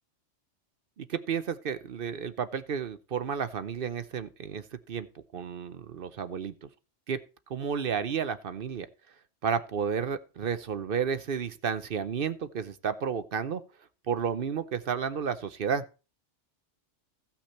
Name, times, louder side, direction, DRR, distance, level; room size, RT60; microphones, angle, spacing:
voice 1, 1.0-5.1 5.3-6.7 7.1-7.2 7.5-8.9 9.4-13.6 14.1-15.8, right 7 dB, 55° right, 12 dB, 0.8 m, -32 dB
15.0 x 5.9 x 4.3 m, 0.32 s
omnidirectional pair, 1.2 m